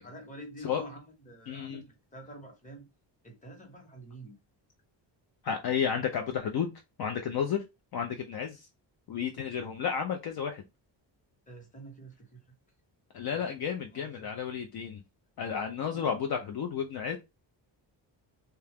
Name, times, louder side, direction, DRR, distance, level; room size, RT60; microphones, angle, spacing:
voice 1, 0.0-2.9 3.2-4.4 11.5-12.4 13.3-13.5 13.8-14.3 15.8-16.2, right 1 dB, 15° left, 0.9 m, -47 dB
voice 2, 1.5-1.8 5.4-6.7 7.0-7.6 7.9-8.7 9.1-10.6 13.1-15.0 15.4-17.2, left 7 dB, 55° left, 0.5 m, -32 dB
2.8 x 2.2 x 3.4 m
wide cardioid pair, 140°, 45 cm